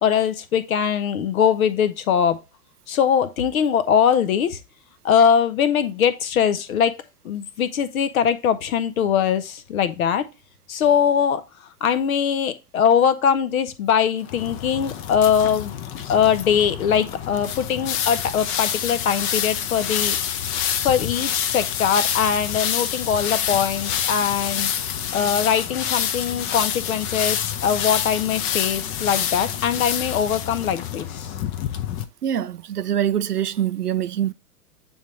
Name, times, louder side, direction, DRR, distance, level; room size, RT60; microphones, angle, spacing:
voice 1, 0.0-2.4 2.9-4.6 5.0-6.9 7.2-10.2 10.7-11.4 11.8-15.7 16.1-20.2 20.8-24.7 25.1-31.3, left 8 dB, 65° left, 1.0 m, -21 dB
sound 1, 14.2-32.0, left 9 dB, 25° left, 0.6 m, -27 dB
voice 2, 32.2-34.3, right 10 dB, 90° right, 0.5 m, -24 dB
8.6 x 3.6 x 3.0 m
figure-of-eight pair, 100°, 45 cm